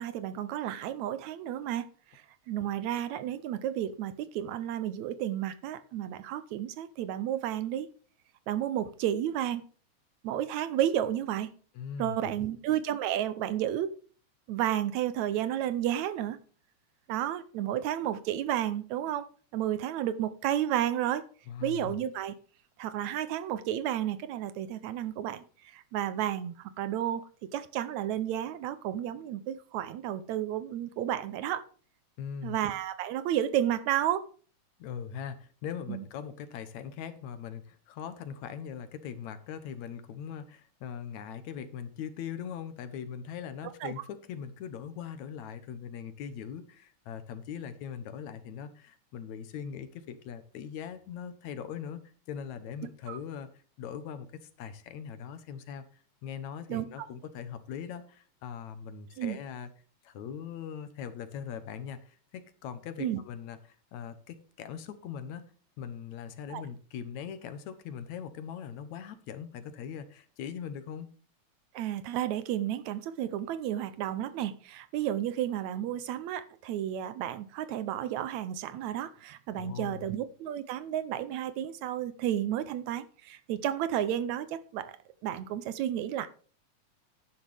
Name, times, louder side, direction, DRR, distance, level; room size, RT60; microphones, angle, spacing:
voice 1, 0.0-7.9 8.5-9.6 10.2-11.5 12.0-13.9 14.5-16.4 17.1-19.3 19.5-21.2 21.6-22.3 22.8-31.6 32.4-34.3 35.9-36.0 43.8-43.9 53.1-53.2 56.7-56.9 59.2-59.4 63.0-63.2 66.5-66.6 71.7-85.0 85.2-86.3, right 11 dB, 80° right, 13 dB, 2.0 m, -32 dB
voice 2, 11.8-12.4 21.5-22.0 32.2-32.6 34.8-52.0 52.3-53.5 53.8-55.8 56.2-59.7 60.0-65.5 65.8-71.1 79.5-80.1, left 8 dB, 75° left, 11 dB, 2.3 m, -41 dB
12.0 x 9.8 x 3.5 m, 0.41 s
omnidirectional pair, 3.4 m